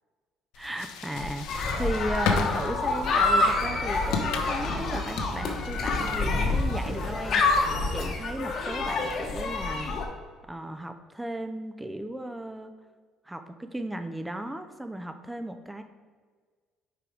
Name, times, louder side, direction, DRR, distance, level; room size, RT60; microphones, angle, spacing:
sound 1, 0.5-7.8, left 4 dB, 85° left, 0.7 m, -35 dB
voice 1, 0.6-7.6 7.9-9.9 10.5-12.7 13.2-15.8, right 1 dB, 10° right, 7 dB, 0.5 m, -35 dB
sound 2, 1.5-10.0, left 3 dB, 55° left, 1.0 m, -27 dB
sound 3, 3.0-8.4, right 2 dB, 90° right, 1.2 m, -45 dB
4.8 x 4.7 x 5.0 m, 1.5 s
cardioid pair, 100°, 0 cm